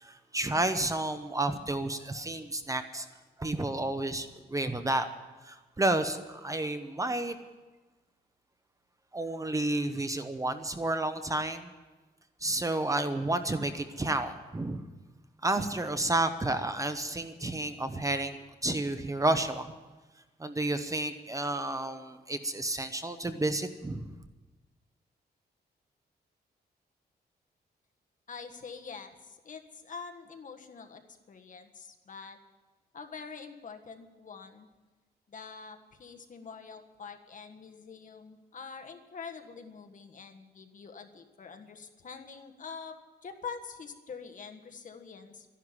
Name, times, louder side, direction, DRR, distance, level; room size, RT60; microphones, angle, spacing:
voice 1, 0.0-3.1 3.4-5.1 5.4-7.4 9.1-11.7 12.4-14.8 15.4-18.4 18.6-19.7 20.4-24.1, right 2 dB, 20° right, 9 dB, 0.9 m, -31 dB
voice 2, 28.3-32.4 32.9-34.7 35.3-45.5, left 5 dB, 50° left, 5 dB, 1.5 m, -45 dB
12.5 x 11.0 x 9.7 m, 1.2 s
wide cardioid pair, 120°, 17 cm